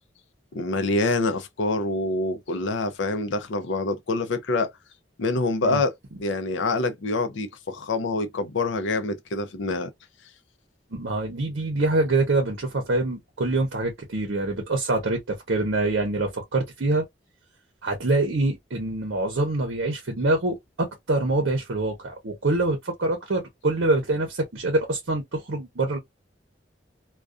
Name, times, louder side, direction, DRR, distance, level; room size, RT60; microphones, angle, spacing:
voice 1, 0.5-4.7 5.2-9.9, left 2 dB, 70° left, 0.5 m, -26 dB
voice 2, 10.9-17.0 17.8-26.0, right 2 dB, 70° right, 0.7 m, -25 dB
2.3 x 2.3 x 2.3 m
head